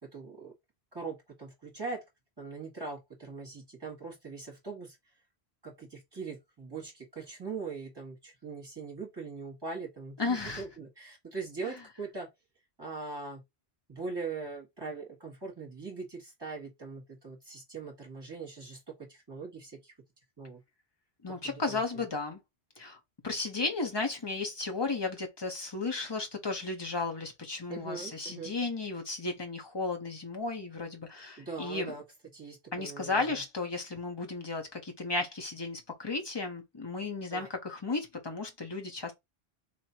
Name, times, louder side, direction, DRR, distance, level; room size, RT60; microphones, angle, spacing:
voice 1, 0.0-0.5 0.9-2.0 2.4-5.0 5.6-12.3 12.8-13.4 13.9-19.9 20.4-20.6 21.3-21.8 27.7-28.5 31.4-32.0 32.3-33.4 37.3-37.5, right 4 dB, 25° right, 1.7 m, -41 dB
voice 2, 10.2-10.6 11.6-11.7 21.2-22.4 22.8-31.9 32.7-39.1, left 3 dB, 25° left, 0.9 m, -34 dB
4.4 x 2.9 x 2.9 m
omnidirectional pair, 1.1 m